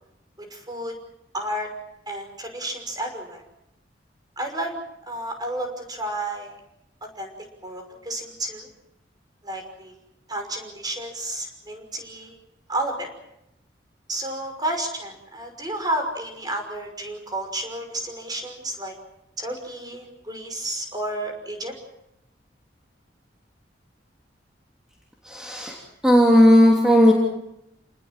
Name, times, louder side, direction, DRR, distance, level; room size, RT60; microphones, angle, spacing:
voice 1, 0.4-0.9 1.3-1.7 2.1-3.4 4.4-4.8 5.0-6.5 7.0-7.3 7.6-8.7 9.4-9.9 10.3-12.4 12.7-13.1 14.1-19.0 19.4-21.7, right 1 dB, 20° right, 4 dB, 5.8 m, -31 dB
voice 2, 25.2-27.1, equal, 5° right, -2 dB, 3.2 m, -16 dB
29.0 x 20.0 x 7.5 m, 0.84 s
head